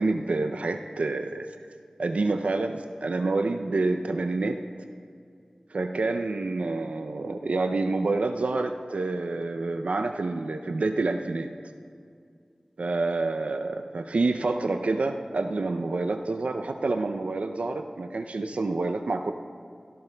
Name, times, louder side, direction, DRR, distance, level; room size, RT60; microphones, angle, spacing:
voice 1, 0.0-1.5 2.0-4.6 5.7-11.5 12.8-19.3, right 3 dB, 75° right, 6 dB, 0.4 m, -28 dB
17.5 x 13.0 x 2.2 m, 2.3 s
wide cardioid pair, 55°, 2 cm